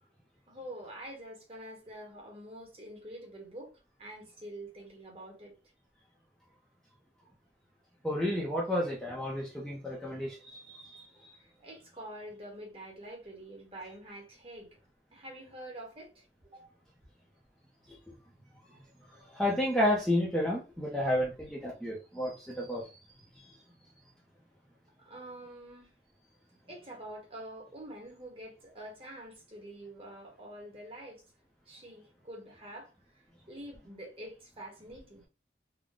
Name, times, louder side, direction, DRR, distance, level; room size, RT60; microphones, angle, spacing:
voice 1, 0.5-5.5 11.4-14.8 15.1-16.7 25.0-25.9 26.7-31.2 31.7-35.2, right 1 dB, 30° right, 1.4 m, -46 dB
voice 2, 8.0-11.1 19.3-22.9, left 1 dB, 5° left, 0.7 m, -31 dB
3.8 x 2.2 x 3.6 m
head